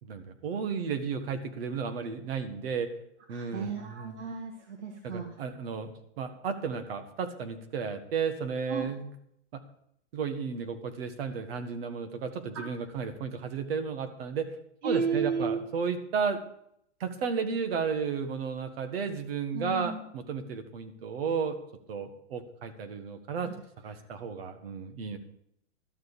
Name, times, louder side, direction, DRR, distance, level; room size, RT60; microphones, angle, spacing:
voice 1, 0.0-2.9 3.3-4.1 5.0-9.1 9.5-9.6 10.1-14.5 14.8-16.4 17.0-21.6 21.9-23.5 23.8-25.2, right 6 dB, 55° right, 8 dB, 1.7 m, -33 dB
voice 2, 3.3-5.3 8.7-8.9 12.5-12.6 14.8-15.6 19.5-20.0 23.4-23.5, right 5 dB, 80° right, 3 dB, 1.8 m, -32 dB
12.5 x 6.9 x 7.0 m, 0.73 s
supercardioid pair, 175°, 35 cm